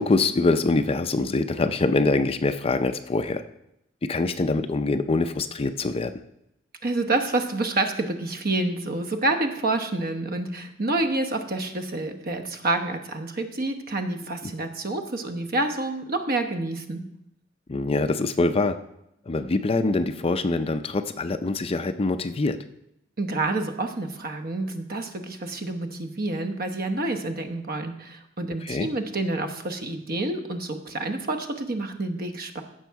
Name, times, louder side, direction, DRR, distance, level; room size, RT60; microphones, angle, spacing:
voice 1, 0.0-3.4 4.0-6.1 17.7-18.8 19.3-22.6 28.6-28.9, left 3 dB, 30° left, 9 dB, 0.5 m, -24 dB
voice 2, 6.8-17.0 23.2-32.6, right 2 dB, 50° right, 6 dB, 1.0 m, -28 dB
15.5 x 6.3 x 4.6 m, 0.82 s
head